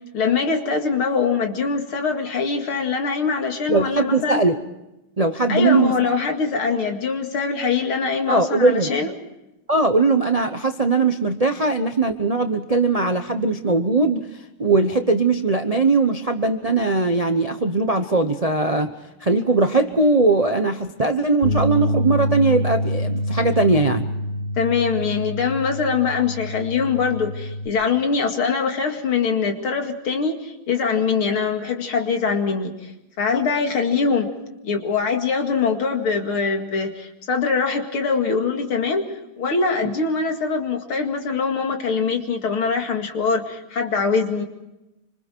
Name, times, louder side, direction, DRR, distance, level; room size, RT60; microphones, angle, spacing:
voice 1, 0.1-4.4 5.5-9.1 24.6-32.9 33.2-34.3 34.6-39.0 39.4-44.5, left 5 dB, 80° left, 4 dB, 3.1 m, -23 dB
voice 2, 3.7-4.6 5.2-6.1 8.3-8.9 9.7-14.3 14.6-18.9 19.2-24.1, right 3 dB, 40° right, 7 dB, 0.5 m, -20 dB
sound 1, 21.4-27.7, equal, 30° left, 2.0 m, -26 dB
26.5 x 25.5 x 4.5 m, 0.93 s
omnidirectional pair, 2.3 m